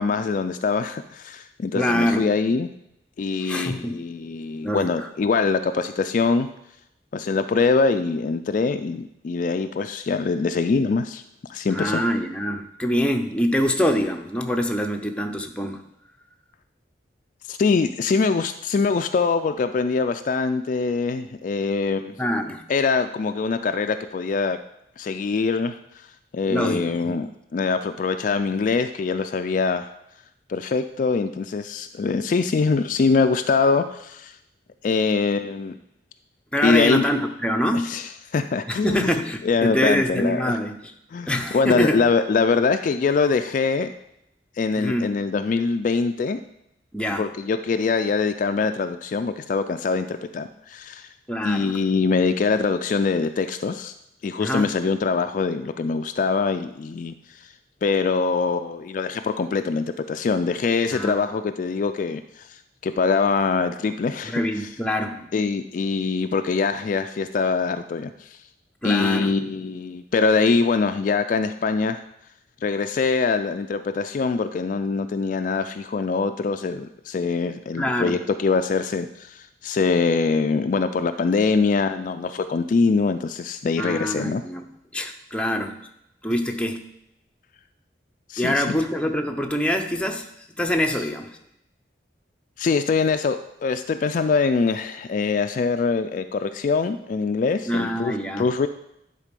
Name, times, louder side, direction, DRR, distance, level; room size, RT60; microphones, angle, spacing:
voice 1, 0.0-2.7 3.2-6.5 7.1-11.2 11.5-12.0 17.5-22.1 22.7-24.6 25.0-25.8 26.3-29.9 30.5-34.4 34.8-35.8 36.6-37.0 37.7-40.6 41.1-43.9 44.6-46.4 47.1-51.1 51.4-53.9 54.2-57.2 57.8-64.4 65.3-68.4 68.8-72.0 72.6-84.4 88.3-88.8 92.6-98.7, left 4 dB, 45° left, 8 dB, 0.3 m, -23 dB
voice 2, 1.7-2.3 3.4-4.0 4.6-5.1 11.7-15.8 22.2-22.6 26.5-27.2 36.5-37.9 38.7-40.9 41.3-42.0 44.8-45.1 46.9-47.3 51.3-51.8 54.4-54.7 60.9-61.2 64.2-65.3 68.8-69.3 77.8-78.2 83.8-84.6 84.9-85.7 86.2-86.8 88.4-90.3 90.6-91.3 97.7-98.7, equal, 5° left, 4 dB, 0.6 m, -25 dB
10.0 x 4.1 x 5.2 m, 0.81 s
head